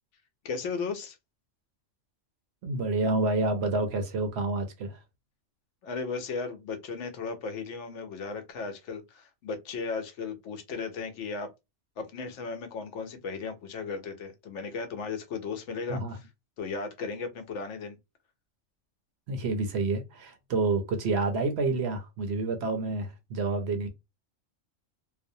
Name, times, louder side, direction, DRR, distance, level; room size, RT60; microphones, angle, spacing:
voice 1, 0.4-1.2 5.8-11.5 12.0-16.3 16.6-18.0, left 4 dB, 75° left, 0.9 m, -36 dB
voice 2, 2.6-5.0 15.9-16.1 19.3-23.9, right 3 dB, 65° right, 0.7 m, -28 dB
2.5 x 2.0 x 2.6 m
omnidirectional pair, 1.3 m